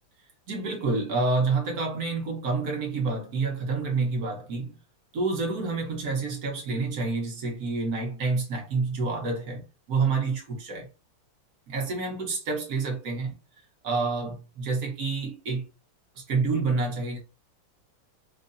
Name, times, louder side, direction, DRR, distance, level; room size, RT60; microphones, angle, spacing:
voice 1, 0.5-4.8 5.1-10.9 11.7-13.4 13.8-15.7 16.1-17.2, right 4 dB, 55° right, 1.2 m, -28 dB
4.6 x 2.6 x 2.5 m
omnidirectional pair, 2.4 m